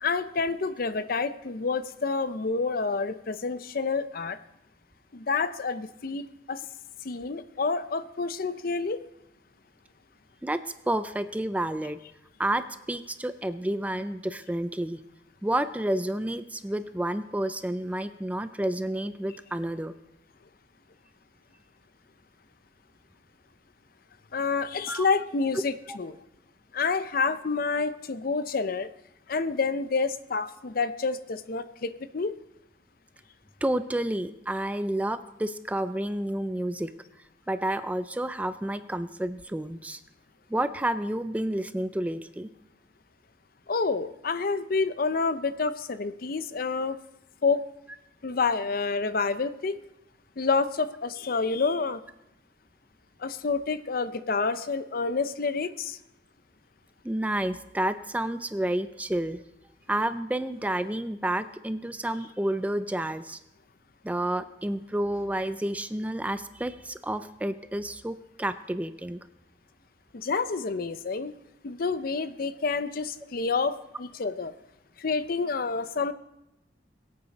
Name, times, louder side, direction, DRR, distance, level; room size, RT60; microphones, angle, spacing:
voice 1, 0.0-4.4 5.1-6.6 7.0-9.0 24.3-26.2 26.7-28.9 29.3-32.3 43.7-47.0 47.4-47.7 48.2-49.8 50.4-52.0 53.2-56.0 70.1-71.3 71.6-74.5 75.0-76.1, left 4 dB, 55° left, 13 dB, 0.6 m, -28 dB
voice 2, 10.4-12.0 12.4-15.0 15.4-19.9 24.9-25.1 25.9-26.0 33.6-36.9 37.5-40.0 40.5-42.5 57.0-59.4 59.9-63.4 64.0-69.2, right 1 dB, 10° right, 11 dB, 0.4 m, -30 dB
22.0 x 8.5 x 4.1 m, 0.89 s
head